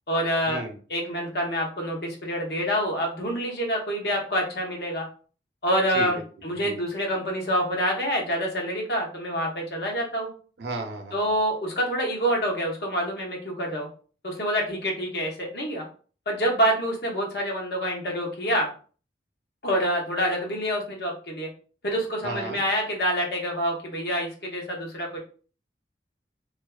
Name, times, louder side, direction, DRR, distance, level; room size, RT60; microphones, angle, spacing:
voice 1, 0.1-0.6 0.9-5.1 5.6-6.2 6.4-10.3 11.1-13.9 14.2-15.8 16.3-18.7 19.6-21.5 21.8-25.2, equal, 65° left, 0 dB, 0.7 m, -27 dB
voice 2, 10.6-11.3 22.2-22.6, right 2 dB, 80° right, 5 dB, 0.5 m, -34 dB
2.4 x 2.2 x 2.3 m, 0.40 s
head